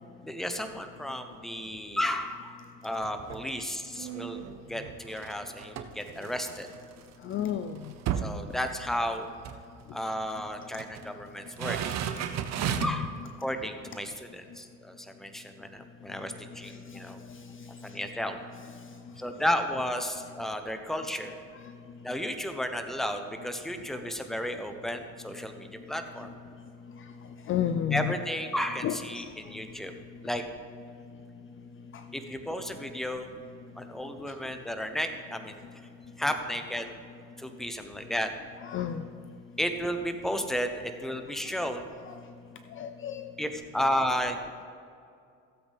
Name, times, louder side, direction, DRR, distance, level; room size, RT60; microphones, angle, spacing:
voice 1, 0.2-2.5 2.8-4.4 4.7-6.7 8.2-9.3 9.9-11.8 12.8-17.2 17.8-18.4 19.2-21.4 22.0-26.3 27.9-29.9 30.2-30.4 32.1-33.3 33.8-35.9 36.2-36.9 37.4-38.3 39.6-41.9 43.4-44.4, equal, ahead, 7 dB, 0.8 m, -33 dB
sound 1, 3.0-3.5 4.0-7.0 7.4-7.5 7.8-9.1 9.4-9.6 10.4-11.1 11.5-13.1 13.6-13.7, right 9 dB, 45° right, 0.8 m, -34 dB
voice 2, 7.2-7.9 12.6-13.1 16.6-17.0 17.3-18.0 21.5-21.6 26.2-26.3 27.0-27.1 27.5-28.1 28.8-29.3 31.9-32.0 38.6-39.1 42.0-42.2 42.7-43.3, left 9 dB, 35° left, 9 dB, 0.4 m, -33 dB
16.0 x 7.9 x 3.4 m, 2.4 s
cardioid pair, 120°, 36 cm